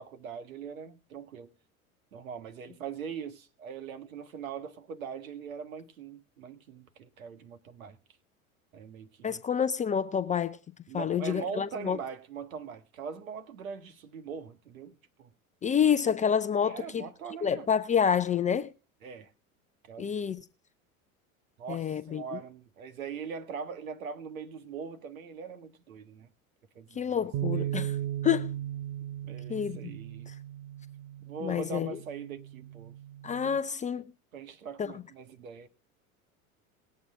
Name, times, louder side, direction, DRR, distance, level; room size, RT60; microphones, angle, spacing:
voice 1, 0.0-1.5 2.1-8.0 8.7-9.4 10.9-15.3 16.6-17.7 19.0-19.3 19.9-20.1 21.6-26.3 26.8-27.7 29.2-30.3 31.2-33.0 33.4-33.5 34.3-35.7, right 6 dB, 70° right, 1.8 m, -41 dB
voice 2, 9.2-10.6 10.9-12.0 15.6-17.0 17.4-18.7 20.0-20.4 21.7-22.2 27.0-28.0 28.2-28.5 29.5-29.9 31.4-32.0 33.2-34.0 34.8-34.9, left 8 dB, 15° left, 0.5 m, -28 dB
sound 1, 27.3-33.6, right 12 dB, 50° right, 1.0 m, -37 dB
19.5 x 8.5 x 3.7 m
figure-of-eight pair, 80°, 42 cm